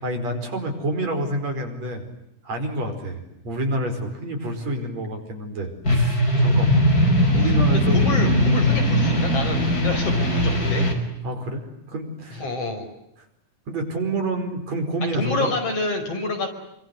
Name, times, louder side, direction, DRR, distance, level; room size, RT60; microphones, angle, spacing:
voice 1, 0.0-2.0 2.4-6.9 7.3-8.0 11.2-12.4 13.7-15.5, right 1 dB, 60° right, 4 dB, 6.1 m, -28 dB
sound 1, 5.8-10.9, left 1 dB, 30° left, 5.4 m, -19 dB
voice 2, 7.9-10.9 12.3-12.9 15.1-16.5, left 2 dB, 50° left, 5 dB, 6.1 m, -28 dB
28.5 x 25.5 x 8.0 m, 0.83 s
omnidirectional pair, 3.5 m